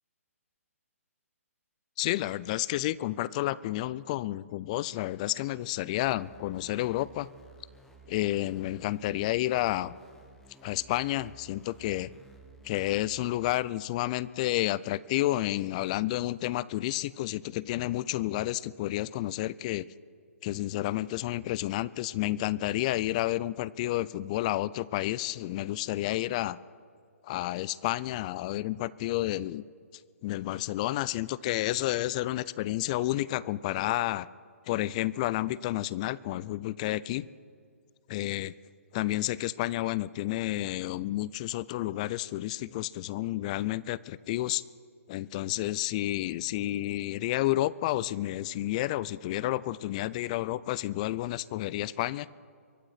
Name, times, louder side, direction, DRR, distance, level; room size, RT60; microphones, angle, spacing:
voice 1, 2.0-7.3 8.1-9.9 10.6-12.1 12.6-19.9 20.4-26.6 27.2-29.6 30.2-34.3 34.7-37.3 38.1-38.5 38.9-44.6 45.1-52.3, left 16 dB, 30° left, 21 dB, 0.3 m, -30 dB
sound 1, 6.0-13.5, right 3 dB, 5° left, 1.1 m, -55 dB
23.0 x 8.9 x 5.8 m, 2.1 s
hypercardioid pair, 150°, 8 cm